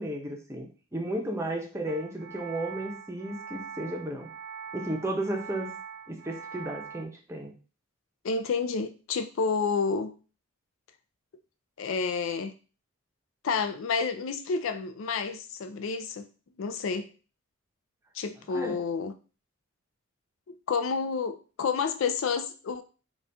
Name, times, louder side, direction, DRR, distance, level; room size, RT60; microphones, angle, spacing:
voice 1, 0.0-4.3 4.7-5.7 6.1-7.5 18.5-18.8, right 1 dB, 15° right, 0.6 m, -34 dB
sound 1, 1.9-7.0, right 6 dB, 60° right, 0.4 m, -42 dB
voice 2, 8.2-10.1 11.8-12.5 13.4-16.3 16.6-17.1 18.1-19.1 20.5-22.8, left 5 dB, 65° left, 0.4 m, -29 dB
4.0 x 2.4 x 3.4 m
head